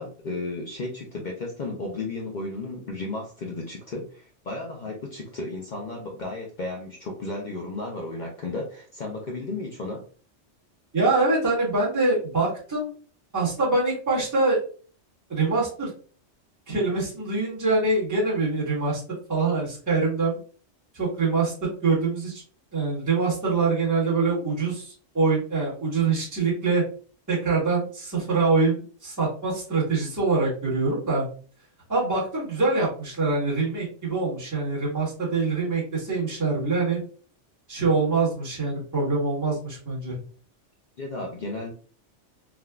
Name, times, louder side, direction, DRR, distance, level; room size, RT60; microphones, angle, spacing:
voice 1, 0.0-10.0 41.0-41.7, left 2 dB, 55° left, -1 dB, 0.5 m, -34 dB
voice 2, 10.9-12.9 13.3-14.6 15.3-15.9 16.7-19.0 19.3-20.4 20.9-21.5 21.8-22.4 22.7-26.8 27.3-31.3 31.9-37.0 37.7-40.1, right 3 dB, 15° right, -7 dB, 1.2 m, -24 dB
3.6 x 2.2 x 2.2 m, 0.41 s
omnidirectional pair, 1.3 m